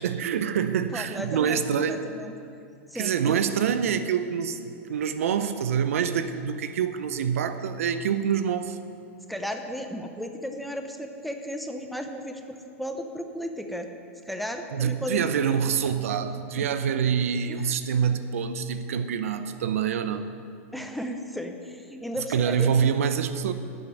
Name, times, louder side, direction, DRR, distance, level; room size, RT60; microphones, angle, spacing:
voice 1, 0.0-2.1 2.9-8.8 14.7-20.3 22.3-23.5, right 7 dB, 80° right, 10 dB, 0.8 m, -26 dB
voice 2, 0.9-1.6 1.9-2.3 2.9-3.4 9.3-13.9 14.3-15.3 16.5-16.7 17.5-17.7 20.7-22.7, equal, ahead, 4 dB, 1.0 m, -34 dB
10.5 x 7.3 x 9.2 m, 2.5 s
hypercardioid pair, 125°, 7 cm